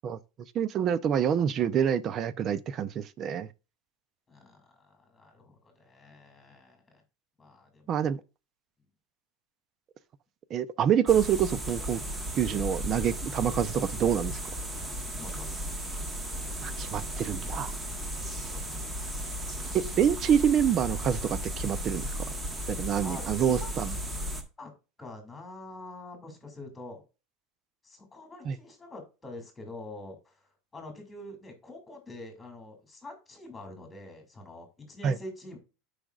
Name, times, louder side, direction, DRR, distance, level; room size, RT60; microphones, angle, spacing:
voice 1, 0.5-3.5 7.9-8.2 10.5-12.0 12.4-14.4 16.6-17.7 19.7-22.1 22.7-23.9 28.5-28.6 35.0-35.2, right 8 dB, 30° right, 0.5 m, -26 dB
voice 2, 4.3-7.0 7.4-8.2 15.2-15.6 18.5-19.0 23.0-23.7 24.6-24.7 25.0-27.0 27.8-35.6, left 2 dB, 10° left, 2.3 m, -45 dB
sound 1, 11.1-24.4, equal, 15° right, 1.1 m, -35 dB
12.5 x 5.0 x 2.3 m
supercardioid pair, 160°, 0 cm